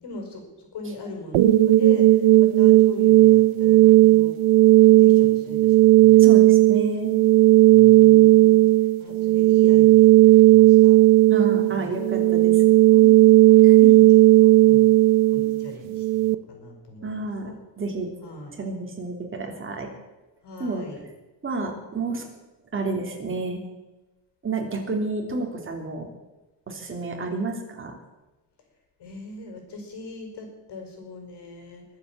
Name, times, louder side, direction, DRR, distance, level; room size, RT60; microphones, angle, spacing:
voice 1, 0.0-4.4 4.8-6.3 7.7-8.6 9.0-11.0 11.7-12.0 12.9-13.3 13.8-14.0 14.4-14.9 15.3-17.5 18.2-18.5 20.4-21.0 29.0-31.9, left 3 dB, 55° left, 4 dB, 5.2 m, -39 dB
sound 1, 1.3-16.4, right 17 dB, 85° right, 0.9 m, -15 dB
voice 2, 6.2-7.2 11.3-12.6 13.6-13.9 17.0-18.1 18.5-19.9 20.6-20.8 21.4-22.3 22.7-23.6 24.4-26.1 26.7-28.0, right 3 dB, 25° right, 1 dB, 3.2 m, -30 dB
22.5 x 8.2 x 7.3 m, 1.1 s
cardioid pair, 150°, 47 cm